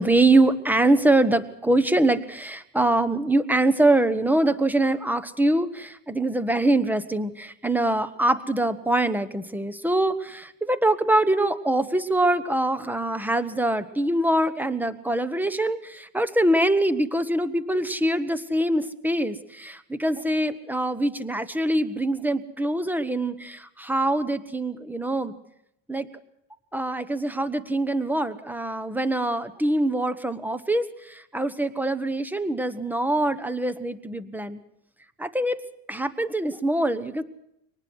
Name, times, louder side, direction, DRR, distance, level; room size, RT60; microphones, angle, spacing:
voice 1, 0.0-25.3 25.9-26.1 26.7-34.6 35.2-35.6 35.9-37.2, right 1 dB, 5° right, 12 dB, 1.1 m, -24 dB
24.0 x 19.5 x 6.2 m, 0.78 s
cardioid pair, 125°, 39 cm